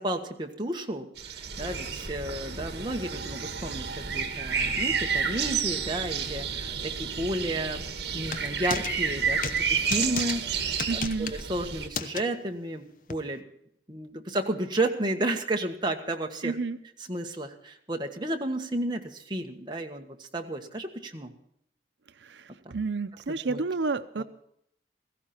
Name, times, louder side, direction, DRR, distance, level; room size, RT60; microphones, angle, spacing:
voice 1, 0.0-7.9 8.1-9.4 9.7-13.4 13.9-16.5 17.1-21.3 23.5-23.6 24.2-24.3, right 1 dB, 25° right, 2 dB, 1.6 m, -32 dB
sound 1, 1.2-11.9, right 6 dB, 65° right, 1.8 m, -30 dB
sound 2, 8.3-8.9 9.4-9.6 9.9-10.3 10.8-11.4 11.9-12.2 13.1-13.2, left 5 dB, 50° left, 0.9 m, -33 dB
voice 2, 10.9-11.3 16.4-16.8 22.2-24.2, right 4 dB, 90° right, 11 dB, 0.7 m, -30 dB
17.0 x 15.5 x 4.4 m, 0.74 s
head